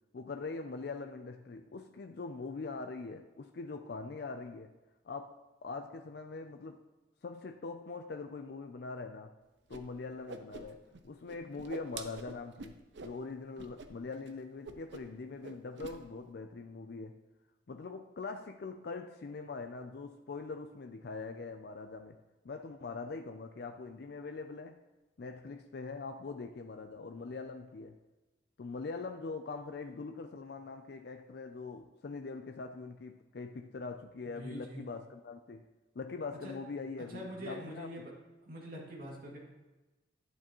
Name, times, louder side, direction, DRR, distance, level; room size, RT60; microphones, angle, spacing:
voice 1, 0.1-4.7 5.0-6.8 7.2-9.3 9.7-12.7 13.0-17.1 17.7-22.2 22.4-24.8 25.2-28.0 28.6-35.7 36.0-37.9, left 4 dB, 55° left, 0.4 m, -42 dB
Whoosh swoosh swish, 9.7-9.8 10.1-11.0 11.3-13.2 13.6-13.9 14.1-14.3 14.6-15.2 15.4-16.0, right 3 dB, 65° right, 0.6 m, -46 dB
voice 2, 34.3-34.8 36.4-36.5 37.1-38.1 38.4-39.4, equal, 45° right, 2.2 m, -44 dB
11.0 x 8.4 x 3.0 m
head